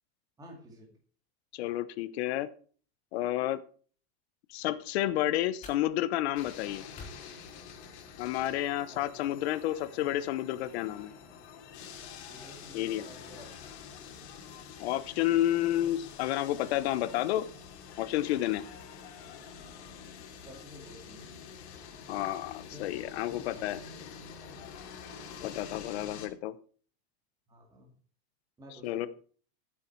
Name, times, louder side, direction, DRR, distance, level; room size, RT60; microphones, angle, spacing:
voice 1, 0.4-1.0 8.9-9.1 12.3-13.6 20.4-21.3 22.6-24.0 25.1-25.5 27.5-28.0 28.6-29.1, equal, 10° right, 0 dB, 2.3 m, -52 dB
voice 2, 1.5-2.5 3.1-3.6 4.5-6.8 8.2-11.1 12.7-13.1 14.8-17.5 18.0-18.6 22.1-23.8 25.4-26.5 28.8-29.1, left 14 dB, 75° left, 15 dB, 1.1 m, -30 dB
sound 1, 4.5-8.5, left 3 dB, 20° left, 4.1 m, -54 dB
sound 2, 6.4-26.3, left 7 dB, 90° left, 3.0 m, -47 dB
14.0 x 7.7 x 4.7 m, 0.42 s
supercardioid pair, 175°, 33 cm